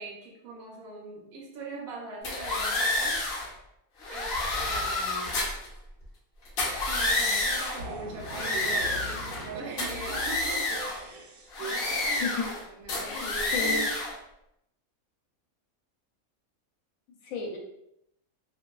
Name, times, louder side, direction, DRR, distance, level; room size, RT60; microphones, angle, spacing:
voice 1, 0.0-3.2 4.1-5.4 6.9-10.7 11.1-13.9, right 3 dB, 65° right, -2 dB, 0.7 m, -42 dB
sound 1, 2.2-3.5 4.0-5.7 6.5-7.8 8.2-9.5 9.8-11.0 11.5-12.6 12.9-14.1, left 2 dB, 60° left, 0.7 m, -29 dB
Jorge Barco, 7.8-12.5, right 2 dB, 80° right, 1.0 m, -40 dB
voice 2, 12.2-12.5 13.0-13.8 17.2-17.6, left 5 dB, 75° left, 1 dB, 1.0 m, -33 dB
2.6 x 2.3 x 2.3 m, 0.79 s
omnidirectional pair, 1.5 m